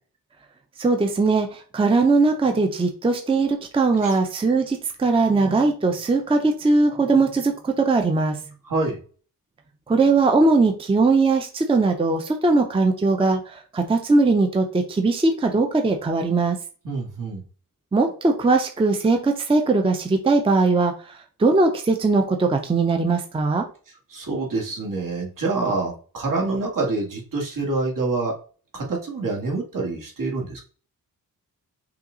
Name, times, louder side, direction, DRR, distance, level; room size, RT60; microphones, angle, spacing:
voice 1, 0.8-8.4 9.9-16.6 17.9-23.6, right 3 dB, 15° right, 4 dB, 0.5 m, -20 dB
voice 2, 8.6-9.0 16.8-17.4 24.1-28.3 28.7-30.6, right 3 dB, 65° right, -1 dB, 1.8 m, -26 dB
5.7 x 2.4 x 3.8 m, 0.39 s
wide cardioid pair, 135°, 35 cm